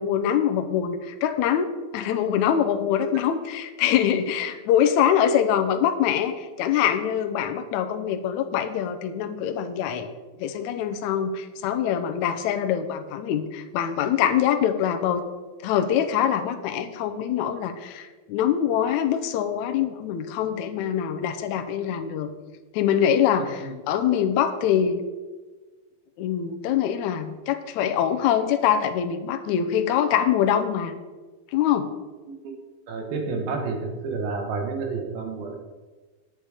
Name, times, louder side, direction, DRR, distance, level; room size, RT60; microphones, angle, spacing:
voice 1, 0.0-10.1 10.4-15.2 15.6-22.3 22.7-25.0 26.2-30.9 31.5-31.9, left 9 dB, 85° left, 6 dB, 1.7 m, -24 dB
voice 2, 32.9-33.8 34.0-35.6, right 4 dB, 80° right, 3 dB, 3.2 m, -29 dB
9.7 x 8.9 x 4.9 m, 1.3 s
omnidirectional pair, 4.3 m